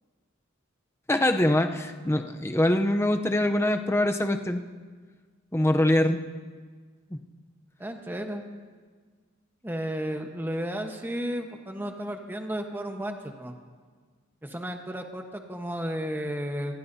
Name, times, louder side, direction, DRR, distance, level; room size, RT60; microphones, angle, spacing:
voice 1, 1.1-4.6 5.5-6.2 7.1-7.2, left 1 dB, 15° left, 6 dB, 0.7 m, -23 dB
voice 2, 7.8-8.4 9.6-13.5 14.4-16.8, equal, 10° right, 4 dB, 1.1 m, -33 dB
25.5 x 16.5 x 2.8 m, 1.5 s
head